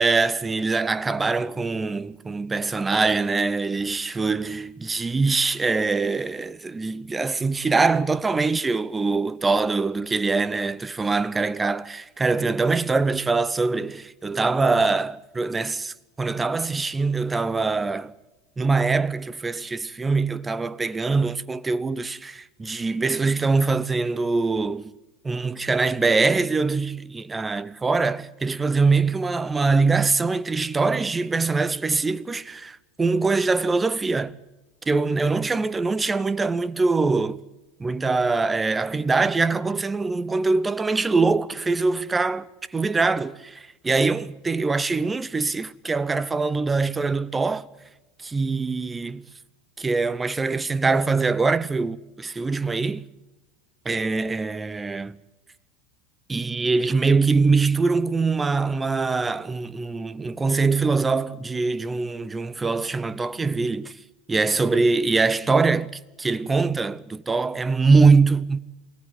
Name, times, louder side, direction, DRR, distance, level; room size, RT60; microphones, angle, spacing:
voice 1, 0.0-18.1 18.6-24.9 25.2-34.4 34.9-37.4 37.8-42.5 42.7-47.7 48.2-49.3 49.8-53.0 53.9-55.2 56.3-63.9 64.3-68.6, right 4 dB, 15° right, 0.7 m, -23 dB
24.0 x 16.5 x 9.2 m
figure-of-eight pair, 75°, 0 cm